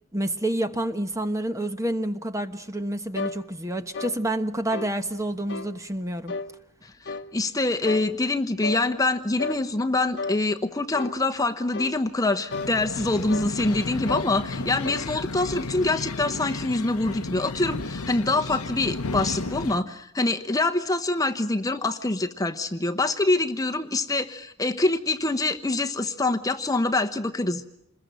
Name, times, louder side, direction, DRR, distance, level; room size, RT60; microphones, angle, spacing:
voice 1, 0.1-6.3, right 1 dB, 15° right, 9 dB, 1.1 m, -28 dB
sound 1, 3.2-3.4 3.9-4.2 4.7-5.0 5.5-5.7 6.3-6.5 7.1-7.3 7.8-8.1 8.6-8.8 9.4-9.6 10.2-10.4 10.9-11.2 11.7-12.0 12.5-12.8 13.3-13.6 14.1-14.3 14.8-15.1, left 3 dB, 55° left, 1.1 m, -33 dB
voice 2, 6.8-27.7, left 2 dB, 15° left, 6 dB, 1.0 m, -25 dB
sound 2, 12.5-19.8, left 3 dB, 85° left, 1.0 m, -33 dB
27.0 x 21.5 x 9.2 m, 0.78 s
head